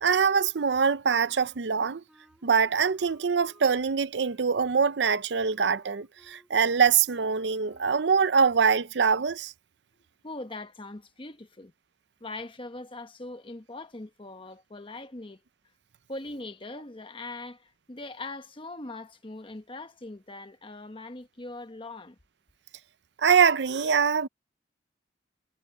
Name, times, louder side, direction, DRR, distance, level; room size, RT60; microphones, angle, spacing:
voice 1, 0.0-2.0 2.4-9.5 23.2-24.3, right 6 dB, 70° right, 0.6 m, -24 dB
Wind instrument woodwind instrument, 1.3-8.1, equal, 5° right, 5.3 m, -62 dB
voice 2, 10.2-11.7 12.2-15.4 16.1-22.2, left 2 dB, 30° left, 1.1 m, -41 dB
head